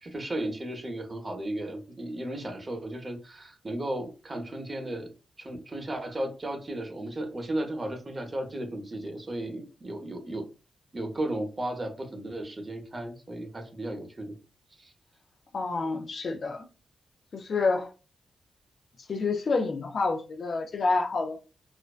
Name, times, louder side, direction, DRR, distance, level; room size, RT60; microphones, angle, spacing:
voice 1, 0.0-10.4 10.9-14.4 14.8-14.9, right 1 dB, 30° right, 0.7 m, -35 dB
voice 2, 15.5-16.7 17.3-17.9 19.1-21.4, left 3 dB, 60° left, 0.4 m, -28 dB
2.5 x 2.1 x 2.3 m
cardioid pair, 65°, 0 cm